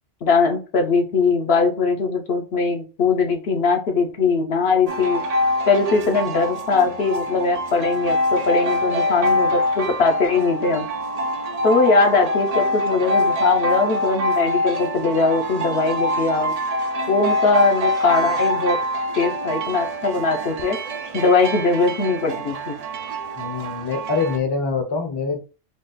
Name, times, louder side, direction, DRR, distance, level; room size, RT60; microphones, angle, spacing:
voice 1, 0.2-5.2 5.7-10.9 11.6-16.5 17.1-18.8 19.1-20.8 21.1-22.8, left 4 dB, 60° left, 3 dB, 0.9 m, -20 dB
sound 1, 4.9-24.4, left 1 dB, 60° right, 0.4 m, -24 dB
voice 2, 23.4-25.4, left 4 dB, 25° left, 4 dB, 0.6 m, -24 dB
3.7 x 2.3 x 3.8 m, 0.32 s
omnidirectional pair, 1.2 m